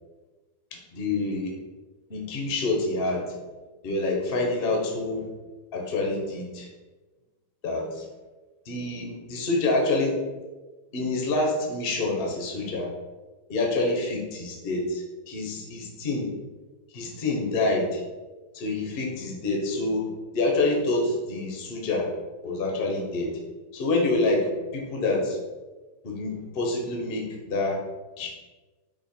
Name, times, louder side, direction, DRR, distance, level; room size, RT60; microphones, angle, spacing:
voice 1, 0.7-1.5 2.1-3.4 3.8-5.3 5.7-6.7 7.6-8.1 8.7-10.2 10.9-12.9 13.5-16.4 16.9-18.0 18.5-22.1 22.4-23.4 23.7-25.4 26.0-27.8 28.2-28.3, left 2 dB, 85° left, 0 dB, 0.5 m, -27 dB
5.6 x 2.2 x 4.1 m, 1.2 s
omnidirectional pair, 2.3 m